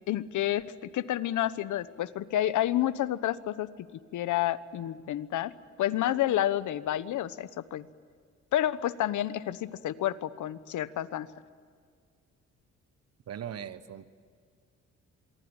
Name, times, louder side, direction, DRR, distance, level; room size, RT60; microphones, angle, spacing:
voice 1, 0.1-3.7 4.1-5.5 5.8-7.9 8.5-11.3, left 12 dB, 75° left, 15 dB, 1.1 m, -29 dB
voice 2, 13.3-14.1, right 9 dB, 55° right, 13 dB, 1.3 m, -39 dB
26.0 x 23.0 x 8.9 m, 2.1 s
cardioid pair, 90°, 30 cm